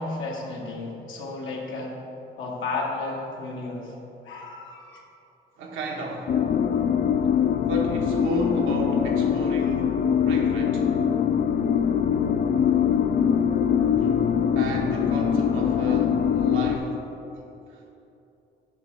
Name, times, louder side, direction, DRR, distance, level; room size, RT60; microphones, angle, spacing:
voice 1, 0.0-1.9 2.4-3.9 4.2-5.0, left 3 dB, 75° left, -2 dB, 1.4 m, -33 dB
voice 2, 5.6-6.3 7.6-10.9 14.0-14.1 14.5-17.0 17.7-17.9, right 2 dB, 85° right, 0 dB, 1.2 m, -33 dB
sound 1, 6.3-16.8, left 8 dB, 45° left, 0.4 m, -23 dB
9.1 x 3.3 x 6.3 m, 2.9 s
cardioid pair, 90°, 20 cm